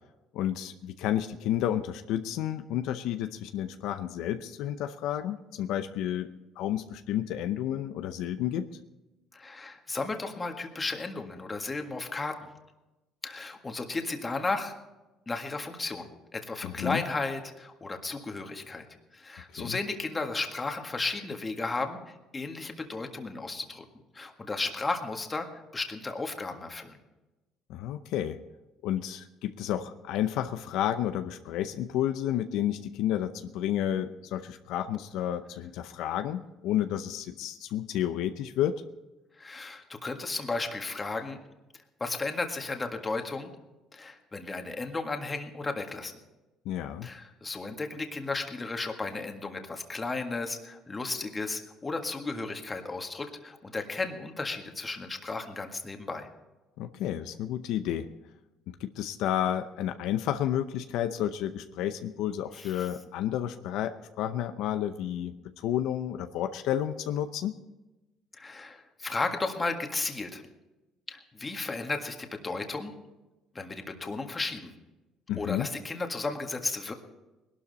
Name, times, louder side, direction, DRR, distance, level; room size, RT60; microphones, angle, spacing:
voice 1, 0.3-6.3 6.6-8.7 16.6-17.0 19.5-19.8 27.7-28.4 28.8-38.8 46.6-47.1 56.8-58.1 58.7-67.5 75.3-75.7, left 11 dB, 75° left, 9 dB, 0.7 m, -31 dB
voice 2, 9.3-12.5 13.2-14.7 15.3-18.9 19.1-23.9 24.1-26.9 39.4-41.4 42.0-43.5 43.9-46.1 47.0-56.3 62.6-62.9 68.4-70.4 71.1-72.9 73.6-74.7 75.4-76.9, left 3 dB, 20° left, 4 dB, 1.7 m, -34 dB
20.5 x 12.0 x 4.1 m, 1.1 s
cardioid pair, 110°, 0 cm